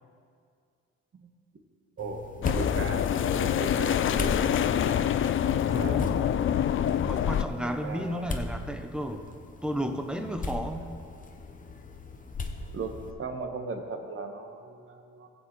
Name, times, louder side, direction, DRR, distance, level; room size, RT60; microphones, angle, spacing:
sound 1, 2.0-13.1, left 3 dB, 25° left, 0.8 m, -38 dB
voice 1, 2.0-4.3 4.6-5.0 5.5-6.2 7.8-8.4 12.7-12.9 13.2-15.3, right 4 dB, 45° right, 4 dB, 1.3 m, -38 dB
sound 2, 2.4-7.4, left 9 dB, 45° left, 0.4 m, -26 dB
voice 2, 5.7-6.3 7.0-9.2 9.6-10.9, equal, 5° right, 6 dB, 0.8 m, -33 dB
16.5 x 7.1 x 3.1 m, 2.2 s
cardioid pair, 90°, 30 cm